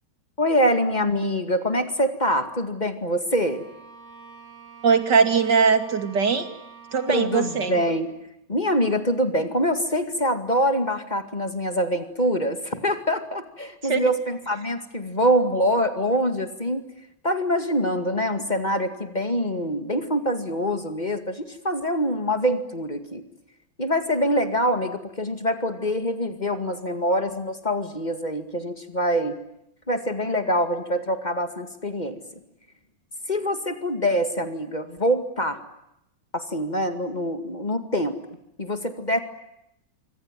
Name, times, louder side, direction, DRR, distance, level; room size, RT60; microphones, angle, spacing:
voice 1, 0.4-3.7 7.1-8.2 8.5-16.9 17.2-23.2 23.8-29.4 29.9-32.2 33.3-35.6 36.3-38.2 38.6-39.2, equal, 25° left, 8 dB, 2.3 m, -25 dB
Bowed string instrument, 3.2-8.1, right 6 dB, 50° right, 7.6 m, -47 dB
voice 2, 4.8-6.5 6.9-7.7 13.9-14.1, right 5 dB, 80° right, 8 dB, 3.1 m, -20 dB
26.0 x 25.0 x 9.2 m, 0.82 s
omnidirectional pair, 1.8 m